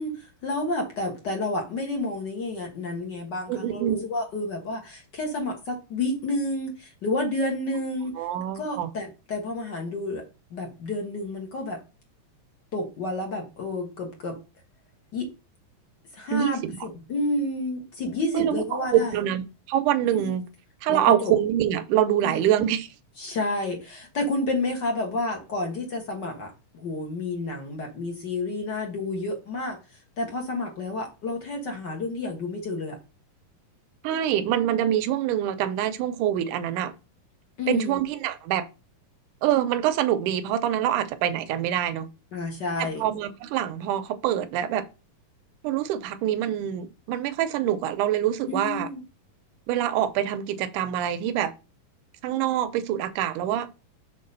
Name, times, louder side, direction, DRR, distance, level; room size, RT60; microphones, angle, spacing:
voice 1, 0.0-8.1 8.5-10.2 10.5-11.8 12.7-14.4 15.1-15.3 16.1-19.2 20.1-20.3 20.9-21.3 22.2-22.4 23.2-29.8 30.2-33.0 37.6-38.0 42.3-43.0 48.5-49.0, left 2 dB, 50° left, 1.3 m, -30 dB
voice 2, 3.5-4.0 8.1-8.9 16.3-16.8 18.3-19.4 19.7-20.4 20.8-22.9 34.0-36.9 37.7-38.7 39.4-42.1 42.8-44.9 45.6-48.9 49.7-51.5 52.2-53.7, right 11 dB, 80° right, 2.0 m, -25 dB
6.6 x 4.1 x 5.4 m
omnidirectional pair, 3.9 m